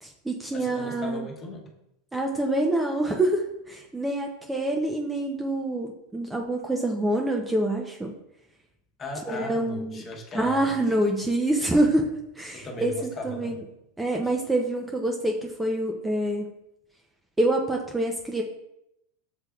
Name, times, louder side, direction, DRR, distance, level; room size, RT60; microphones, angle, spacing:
voice 1, 0.0-1.3 2.1-8.1 9.3-9.9 10.3-12.1 12.4-12.9 13.2-13.6 14.0-16.4 17.4-18.4, right 1 dB, 10° right, 2 dB, 0.5 m, -26 dB
voice 2, 0.5-1.7 9.0-10.9 12.5-13.6, left 1 dB, 30° left, 1 dB, 1.0 m, -37 dB
6.7 x 3.3 x 2.3 m, 0.82 s
hypercardioid pair, 105°, 0 cm